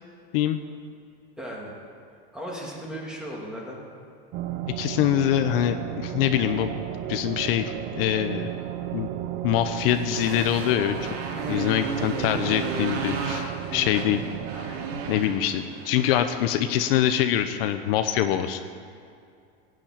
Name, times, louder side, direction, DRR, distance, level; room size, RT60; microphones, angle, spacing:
voice 1, 1.4-1.7 2.3-3.8 11.3-11.7 13.7-14.0, equal, ahead, -4 dB, 2.8 m, -36 dB
sound 1, 4.3-15.2, right 11 dB, 45° right, 0.8 m, -34 dB
voice 2, 4.8-6.8 7.1-8.5 8.9-9.1 9.4-11.1 11.5-14.2 14.5-14.8 15.1-18.6, left 11 dB, 65° left, 8 dB, 0.9 m, -24 dB
Motorcycle, 9.6-17.0, right 4 dB, 80° right, 2.6 m, -34 dB
17.0 x 7.6 x 9.0 m, 2.4 s
supercardioid pair, 160°, 31 cm